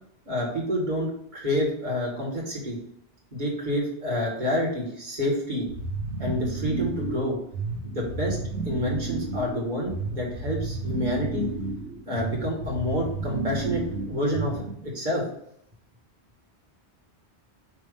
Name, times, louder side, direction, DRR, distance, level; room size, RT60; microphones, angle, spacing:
voice 1, 0.3-2.8 3.3-5.7 6.2-7.4 7.8-8.4 8.6-11.5 12.1-15.2, left 1 dB, 40° right, -3 dB, 2.0 m, -28 dB
sound 1, 5.7-14.9, right 3 dB, 85° right, 1.3 m, -32 dB
6.1 x 3.1 x 5.1 m, 0.75 s
omnidirectional pair, 1.2 m